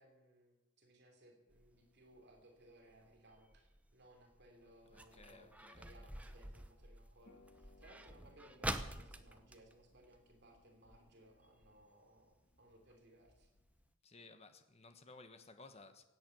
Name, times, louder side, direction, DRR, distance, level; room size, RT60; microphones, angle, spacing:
voice 1, 0.0-13.5, right 1 dB, 55° right, 3.0 m, -64 dB
sound 1, 1.5-10.8 11.1-11.2 11.4-11.8 12.3-12.4 12.9-13.0 13.3-13.4 13.8-13.9, right 1 dB, 5° right, 0.8 m, -48 dB
voice 2, 4.9-6.2 14.0-16.0, left 3 dB, 30° left, 1.3 m, -58 dB
Harp, 7.2-13.9, left 2 dB, 60° left, 1.5 m, -68 dB
17.0 x 8.6 x 9.1 m
head